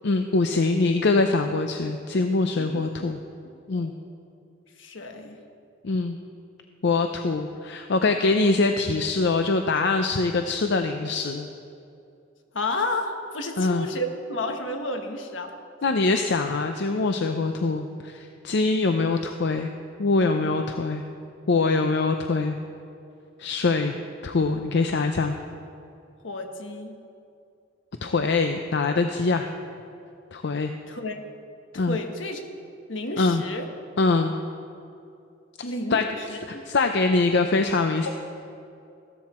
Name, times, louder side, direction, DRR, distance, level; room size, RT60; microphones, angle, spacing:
voice 1, 0.0-3.2 3.7-3.9 5.8-6.2 6.8-11.5 13.6-13.9 15.8-19.7 20.0-21.0 21.5-22.6 23.4-23.9 24.2-25.4 28.0-29.5 30.3-30.7 31.8-32.0 33.2-33.4 34.0-34.3 35.9-38.1, left 3 dB, 65° left, 6 dB, 0.6 m, -23 dB
voice 2, 2.6-3.1 3.7-3.9 4.8-5.4 12.5-15.5 26.2-27.0 30.9-31.2 31.7-32.4 32.9-33.7 35.6-36.6, left 2 dB, 80° left, 5 dB, 1.3 m, -31 dB
15.0 x 13.0 x 4.4 m, 2.5 s
head